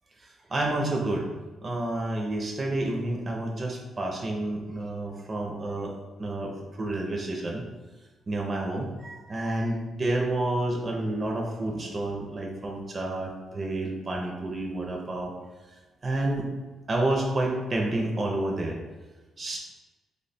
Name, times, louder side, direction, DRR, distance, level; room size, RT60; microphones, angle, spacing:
voice 1, 0.5-1.2 1.6-5.9 6.2-7.6 8.3-15.3 16.0-16.5 16.9-18.8 19.4-19.6, right 2 dB, 30° right, -1 dB, 0.4 m, -29 dB
3.1 x 2.1 x 4.0 m, 1.2 s
cardioid pair, 135°, 0 cm